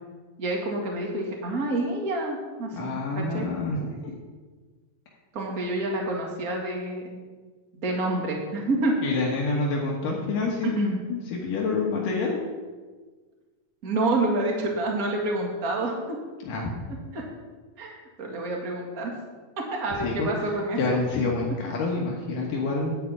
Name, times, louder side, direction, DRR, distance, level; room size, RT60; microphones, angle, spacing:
voice 1, 0.4-3.5 5.3-7.2 7.7-8.9 10.6-11.0 13.8-16.2 17.1-17.2 17.8-19.2 19.7-20.8, right 2 dB, 30° right, -1 dB, 1.8 m, -28 dB
voice 2, 2.7-4.2 9.0-12.4 16.5-16.7 19.9-20.3 20.8-22.9, left 3 dB, 75° left, -2 dB, 3.0 m, -27 dB
11.5 x 5.0 x 8.4 m, 1.4 s
omnidirectional pair, 4.0 m